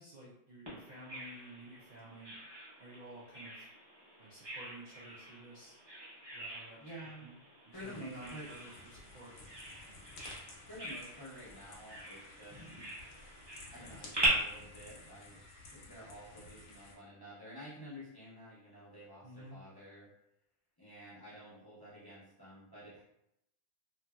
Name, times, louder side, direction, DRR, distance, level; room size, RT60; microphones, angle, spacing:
voice 1, 0.0-2.4 2.8-3.7 4.2-5.7 6.3-6.8 7.2-7.4 7.7-9.3 9.8-9.9 19.2-19.6, right 1 dB, 70° right, -6 dB, 0.4 m, -52 dB
Bird vocalization bird call bird song, 0.7-14.3, right 1 dB, 25° right, 0.7 m, -43 dB
voice 2, 6.8-7.3 7.7-8.5 10.7-12.6 13.7-20.1 20.8-23.0, equal, 25° left, -10 dB, 0.5 m, -50 dB
sound 1, 7.7-16.9, left 2 dB, 65° left, 1.0 m, -54 dB
2.7 x 2.6 x 2.3 m, 0.82 s
omnidirectional pair, 1.5 m